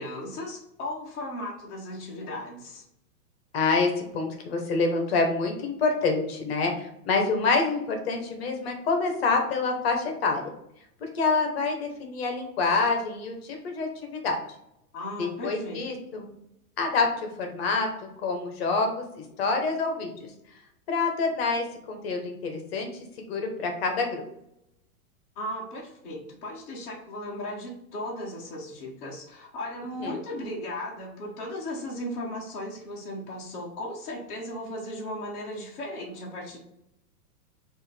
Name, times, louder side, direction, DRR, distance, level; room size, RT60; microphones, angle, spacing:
voice 1, 0.0-2.8 14.9-15.8 25.3-36.6, left 1 dB, 15° left, -6 dB, 0.7 m, -36 dB
voice 2, 3.5-10.4 11.0-14.4 15.2-16.3 16.8-17.1 17.4-17.9 18.2-20.1 20.9-22.9 23.3-24.2 30.0-30.1, left 4 dB, 40° left, 3 dB, 0.9 m, -27 dB
6.1 x 2.6 x 3.3 m, 0.81 s
supercardioid pair, 165°, 45 cm